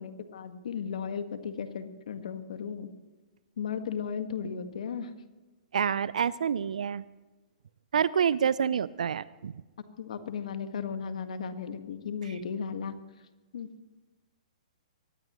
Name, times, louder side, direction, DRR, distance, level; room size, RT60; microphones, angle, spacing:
voice 1, 0.0-2.9 3.6-5.1 10.0-12.9 13.5-13.7, left 6 dB, 65° left, 8 dB, 1.7 m, -35 dB
voice 2, 5.7-7.0 7.9-9.6, right 7 dB, 70° right, 19 dB, 0.6 m, -27 dB
23.5 x 19.0 x 3.1 m, 1.2 s
hypercardioid pair, 120°, 4 cm